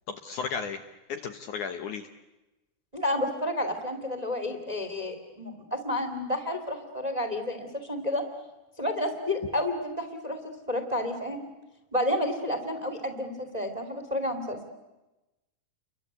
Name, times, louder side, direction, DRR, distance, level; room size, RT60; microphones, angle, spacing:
voice 1, 0.2-0.8 1.1-2.0, left 6 dB, 65° left, 7 dB, 2.2 m, -34 dB
voice 2, 2.9-8.2 8.8-10.4 10.7-11.4 11.9-14.7, left 1 dB, 10° right, 7 dB, 2.1 m, -30 dB
30.0 x 24.0 x 8.3 m, 1.0 s
omnidirectional pair, 4.4 m